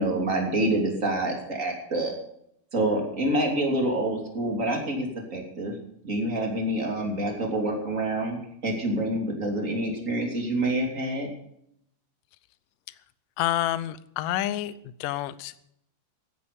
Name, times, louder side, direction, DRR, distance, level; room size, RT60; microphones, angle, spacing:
voice 1, 0.0-2.1 2.7-5.7 6.0-11.3, right 1 dB, 20° right, 1 dB, 3.0 m, -27 dB
voice 2, 13.4-14.7 15.0-15.7, left 14 dB, 75° left, 16 dB, 2.2 m, -28 dB
16.5 x 9.8 x 6.9 m, 0.73 s
omnidirectional pair, 4.2 m